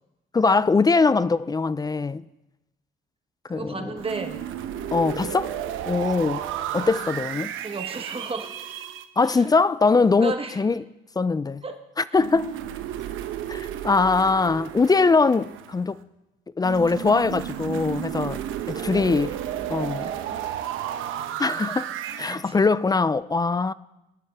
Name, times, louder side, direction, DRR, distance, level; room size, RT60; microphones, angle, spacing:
voice 1, 0.3-2.2 3.5-3.9 4.9-5.5 5.9-6.4 6.7-7.5 9.2-10.8 11.2-11.6 12.0-12.5 13.5-16.0 16.6-18.4 18.7-19.3 19.7-20.0 21.4-21.9 22.2-23.7, left 4 dB, 20° left, 0.4 m, -22 dB
voice 2, 3.5-4.4 7.6-8.5 9.2-9.5 10.1-10.6 11.6-11.8 12.1-12.2 18.7-19.3 20.0-20.1 22.3-22.6, right 4 dB, 30° right, 1.3 m, -34 dB
sound 1, 4.0-9.0 12.2-15.9 16.6-22.4, right 11 dB, 90° right, 0.9 m, -32 dB
20.0 x 12.0 x 3.5 m
cardioid pair, 90°, 20 cm